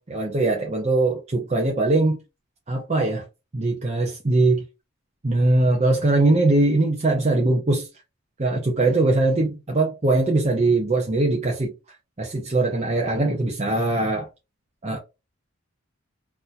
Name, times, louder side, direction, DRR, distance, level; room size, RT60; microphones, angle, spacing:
voice 1, 0.0-2.2 2.7-3.3 3.5-4.6 5.2-7.9 8.4-11.7 12.2-14.3 14.8-15.0, right 2 dB, 30° right, 0.6 m, -21 dB
4.0 x 2.7 x 2.3 m
head